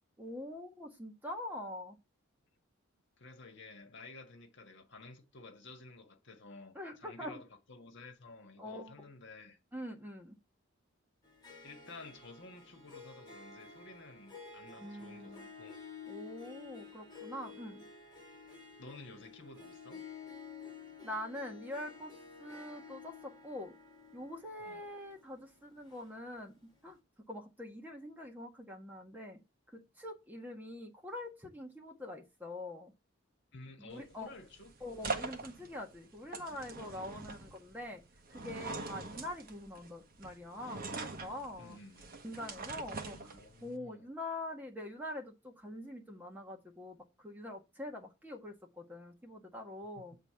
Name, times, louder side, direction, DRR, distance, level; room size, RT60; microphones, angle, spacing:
voice 1, 0.2-2.0 6.7-7.4 8.6-8.9 9.7-10.4 14.8-15.5 16.1-17.8 21.0-22.1 22.4-23.7 24.1-26.5 26.8-27.0 27.3-29.4 29.7-32.9 33.8-34.3 34.8-38.0 38.3-41.8 42.2-50.2, left 1 dB, 10° right, 1.5 m, -44 dB
voice 2, 3.2-9.6 11.6-15.8 18.8-20.0 24.6-24.8 33.5-34.7 36.9-37.2 41.6-42.1 43.0-44.1 49.9-50.0, left 3 dB, 60° left, 1.5 m, -53 dB
Harp, 11.2-26.6, left 5 dB, 20° left, 3.7 m, -52 dB
sound 1, 33.9-43.8, right 3 dB, 45° right, 1.3 m, -44 dB
8.2 x 4.2 x 6.9 m
head